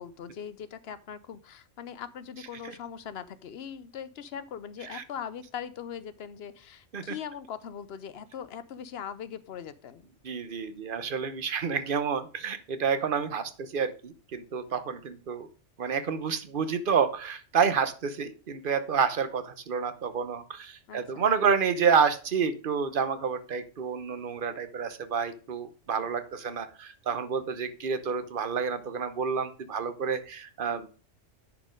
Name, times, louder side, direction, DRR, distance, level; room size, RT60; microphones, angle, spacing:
voice 1, 0.0-10.1 20.9-21.3 26.0-26.1, left 8 dB, 60° left, 14 dB, 0.9 m, -41 dB
voice 2, 10.2-15.5 15.8-30.9, right 6 dB, 50° right, 11 dB, 0.9 m, -29 dB
10.0 x 4.3 x 5.1 m, 0.37 s
omnidirectional pair, 1.2 m